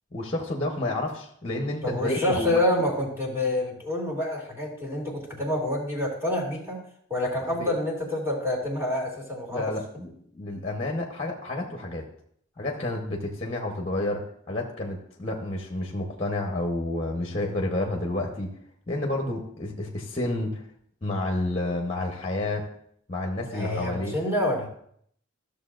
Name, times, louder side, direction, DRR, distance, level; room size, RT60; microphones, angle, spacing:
voice 1, 0.1-2.6 7.6-7.7 9.5-12.1 12.6-18.5 18.9-20.7 21.0-22.7 23.1-24.1, left 2 dB, 30° left, 1 dB, 1.0 m, -30 dB
voice 2, 1.8-6.8 7.1-9.7 23.5-24.7, left 1 dB, 10° right, -3 dB, 2.4 m, -27 dB
14.0 x 6.7 x 2.5 m, 0.66 s
head